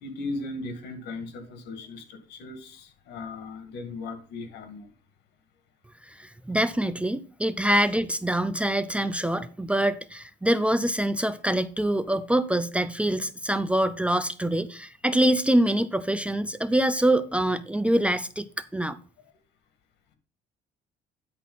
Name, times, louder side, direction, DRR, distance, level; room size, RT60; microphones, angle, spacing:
voice 1, 0.0-4.9 7.5-7.6, left 3 dB, 80° left, 2.1 m, -37 dB
voice 2, 6.1-19.0, right 1 dB, 5° right, 0.5 m, -25 dB
10.5 x 4.4 x 5.6 m
cardioid pair, 110°, 17 cm